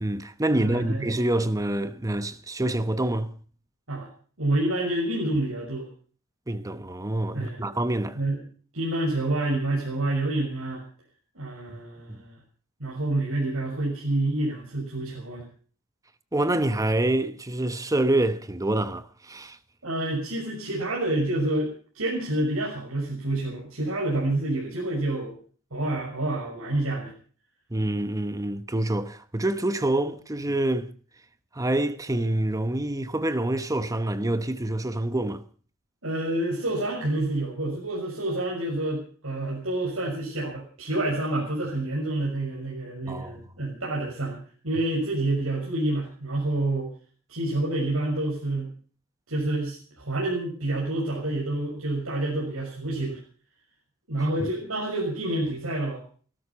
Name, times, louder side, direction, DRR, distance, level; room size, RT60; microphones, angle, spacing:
voice 1, 0.0-3.3 6.5-8.2 12.1-12.2 16.3-19.6 27.7-30.9 31.5-35.4 43.1-43.4, right 1 dB, 15° right, 1.0 m, -26 dB
voice 2, 0.5-1.1 3.9-4.1 4.4-5.9 7.3-7.6 8.1-8.4 8.7-10.8 11.3-12.4 12.8-15.4 19.8-21.7 21.9-25.3 25.7-27.1 36.0-44.4 44.6-46.9 47.3-48.7 49.3-53.2 54.1-56.0, right 1 dB, 85° right, 6.3 m, -28 dB
18.0 x 13.0 x 5.6 m
head